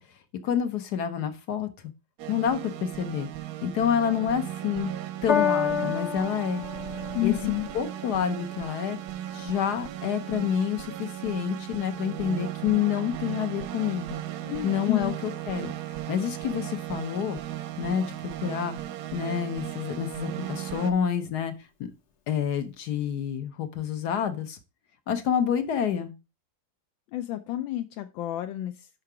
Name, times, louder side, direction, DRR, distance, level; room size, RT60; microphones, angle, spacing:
voice 1, 0.4-1.7 2.3-3.3 3.6-4.9 5.2-6.6 7.2-7.3 7.7-9.0 9.3-14.2 14.6-15.7 16.1-17.4 17.8-18.8 19.1-21.5 21.8-21.9 22.3-24.6 25.1-26.1, left 9 dB, 65° left, 9 dB, 1.2 m, -28 dB
sound 1, 2.2-20.9, right 12 dB, 70° right, 1.0 m, -36 dB
Piano, 5.3-11.9 12.7-12.8, left 7 dB, 50° left, 1.0 m, -33 dB
voice 2, 7.1-7.7 14.4-15.1 27.1-28.9, left 15 dB, 80° left, 8 dB, 1.3 m, -30 dB
5.6 x 5.2 x 4.7 m, 0.28 s
omnidirectional pair, 2.1 m